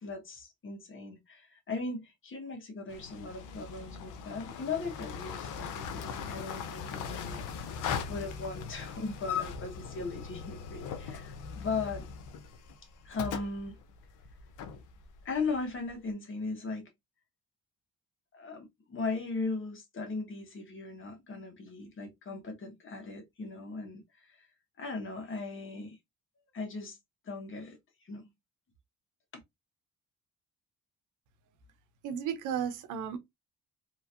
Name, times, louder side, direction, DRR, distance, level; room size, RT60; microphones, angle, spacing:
voice 1, 0.0-7.4 8.1-12.0 13.0-13.8 15.2-16.9 18.3-24.5 24.8-26.0 26.5-27.0 27.2-27.8 28.0-28.2 29.3-29.4, left 4 dB, 40° left, 1.1 m, -38 dB
sound 1, 2.9-15.9, left 7 dB, 90° left, 0.6 m, -40 dB
voice 2, 32.0-33.2, right 8 dB, 90° right, 0.7 m, -34 dB
3.0 x 2.6 x 2.4 m
cardioid pair, 90°, 30 cm